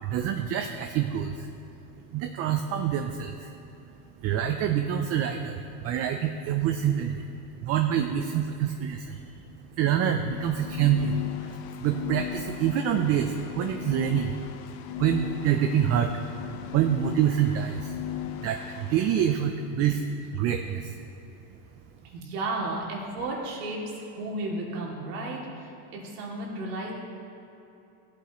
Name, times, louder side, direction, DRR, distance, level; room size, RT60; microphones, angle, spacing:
voice 1, 0.0-1.5 2.1-3.5 4.2-7.3 7.6-9.2 9.8-14.4 15.0-16.2 16.7-18.0 18.4-20.0 20.3-21.0, right 9 dB, 35° right, 6 dB, 0.5 m, -26 dB
sound 1, 10.2-19.3, left 11 dB, 50° left, 0.6 m, -37 dB
voice 2, 22.1-26.9, right 2 dB, 85° right, -3 dB, 2.6 m, -33 dB
16.0 x 8.3 x 3.0 m, 2.9 s
supercardioid pair, 135°, 45 cm